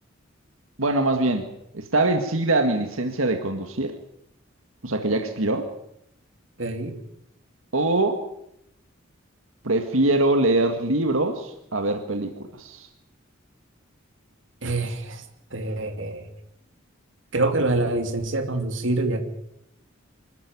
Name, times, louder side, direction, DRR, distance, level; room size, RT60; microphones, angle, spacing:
voice 1, 0.8-3.9 4.8-5.7 7.7-8.2 9.6-12.9, right 2 dB, 90° right, 5 dB, 1.9 m, -23 dB
voice 2, 6.6-7.0 14.6-15.2 15.5-16.3 17.3-19.2, right 2 dB, 65° right, 5 dB, 3.0 m, -25 dB
25.5 x 13.5 x 9.6 m, 0.81 s
head